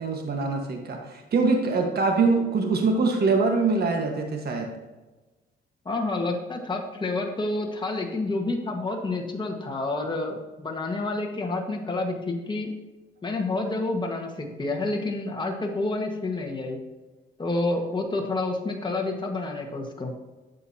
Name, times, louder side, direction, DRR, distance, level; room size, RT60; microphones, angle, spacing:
voice 1, 0.0-4.7, right 4 dB, 50° right, 2 dB, 1.6 m, -24 dB
voice 2, 5.9-12.7 13.2-16.8 17.4-20.1, left 2 dB, 25° left, 1 dB, 1.6 m, -29 dB
11.0 x 7.4 x 2.9 m, 1.2 s
cardioid pair, 90°, 20 cm